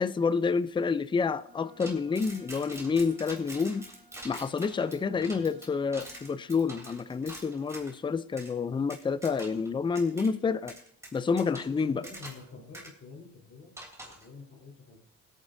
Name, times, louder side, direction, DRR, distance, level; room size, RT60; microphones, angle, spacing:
voice 1, 0.0-3.9 4.2-10.7 11.1-12.0, left 5 dB, 15° left, 0.4 m, -28 dB
Wind instrument woodwind instrument, 1.4-6.4, equal, 30° right, 5.7 m, -59 dB
sound 1, 1.8-7.9 8.4-8.5 8.9-9.7 9.9-10.3 10.7-12.5 12.7-12.9 13.8-14.3, right 1 dB, 10° right, 3.2 m, -45 dB
voice 2, 5.1-5.5 10.1-10.2 11.7-13.7 14.2-15.0, left 4 dB, 45° left, 3.6 m, -48 dB
20.0 x 8.9 x 2.6 m
cardioid pair, 90°, 30 cm